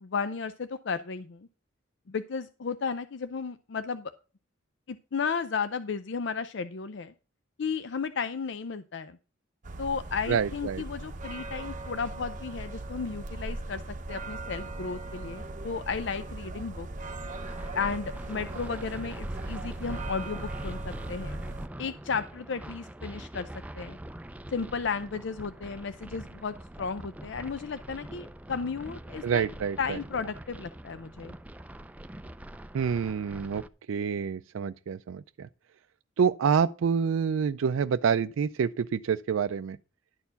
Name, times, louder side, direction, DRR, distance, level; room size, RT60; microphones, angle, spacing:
voice 1, 0.0-1.5 2.1-4.1 4.9-7.1 7.6-9.2 9.8-16.9 17.7-21.4 21.8-23.5 23.8-24.0 24.5-29.5 29.8-31.3, left 5 dB, 65° left, 0.5 m, -34 dB
sound 1, 9.6-21.7, right 2 dB, 40° right, 0.8 m, -38 dB
voice 2, 10.3-10.8 29.2-30.0 32.7-33.6 33.9-35.5 36.2-39.8, right 6 dB, 90° right, 0.4 m, -27 dB
sound 2, 17.3-33.7, right 1 dB, 5° right, 0.4 m, -44 dB
11.5 x 4.5 x 6.8 m
head